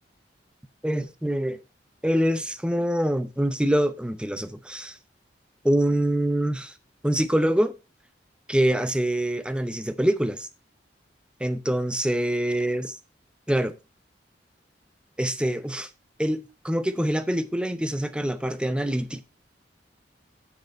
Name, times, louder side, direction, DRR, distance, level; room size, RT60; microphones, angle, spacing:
voice 1, 0.8-1.6 2.0-5.0 5.6-6.7 7.0-7.7 8.5-10.5 11.4-13.0 13.5-13.8 15.2-15.9 16.2-19.2, right 1 dB, 5° right, 0.7 m, -25 dB
7.6 x 6.6 x 4.4 m
head